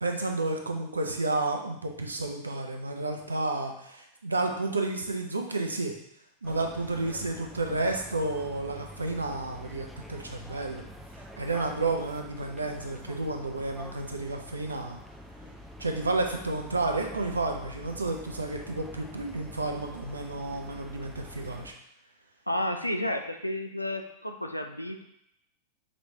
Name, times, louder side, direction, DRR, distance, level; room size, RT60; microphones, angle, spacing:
voice 1, 0.0-5.9 6.4-10.8 11.4-15.0 15.8-21.7, right 2 dB, 80° right, 3 dB, 0.5 m, -31 dB
sound 1, 6.4-21.7, left 1 dB, 5° right, 0.4 m, -46 dB
voice 2, 22.5-25.0, left 1 dB, 90° left, 5 dB, 0.3 m, -31 dB
5.1 x 3.0 x 2.7 m, 0.79 s
figure-of-eight pair, 90°, 0 cm